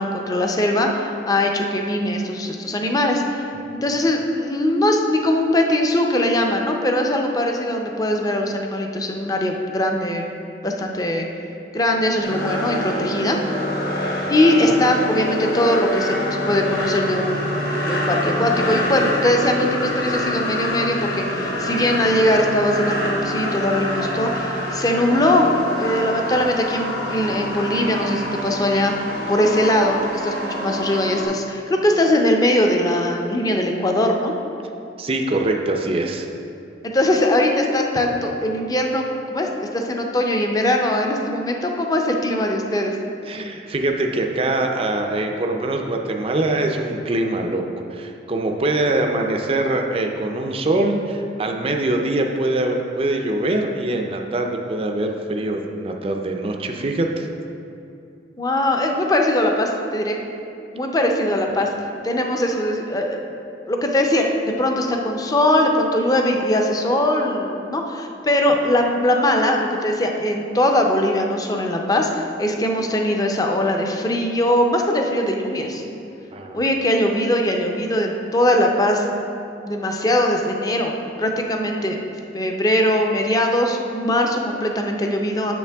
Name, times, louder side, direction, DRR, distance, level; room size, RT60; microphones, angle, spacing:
voice 1, 0.0-3.5 3.8-10.2 10.6-11.3 11.7-13.4 14.3-16.2 16.4-25.5 25.8-29.0 29.3-34.4 36.8-39.5 39.7-42.9 58.4-60.2 60.7-61.7 62.0-63.2 63.7-75.8 76.5-79.1 79.6-82.0 82.3-85.5, left 1 dB, 20° left, 2 dB, 0.6 m, -21 dB
sound 1, 12.2-31.2, left 1 dB, 60° left, 1.6 m, -26 dB
voice 2, 35.0-36.3 43.2-47.6 47.9-57.3 76.3-76.7, right 2 dB, 35° right, 3 dB, 0.5 m, -23 dB
8.4 x 6.5 x 3.4 m, 2.6 s
head